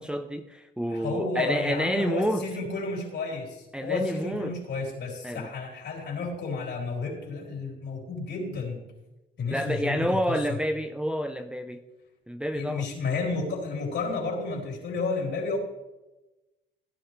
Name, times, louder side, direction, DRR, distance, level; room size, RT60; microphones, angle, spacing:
voice 1, 0.0-2.4 3.7-4.5 5.2-5.5 9.5-11.8 12.3-12.9, equal, 5° right, 6 dB, 0.7 m, -29 dB
voice 2, 0.9-8.8 9.4-10.6 12.5-15.6, left 4 dB, 60° left, -1 dB, 4.2 m, -32 dB
17.0 x 9.9 x 3.4 m, 1.0 s
cardioid pair, 90°, 20 cm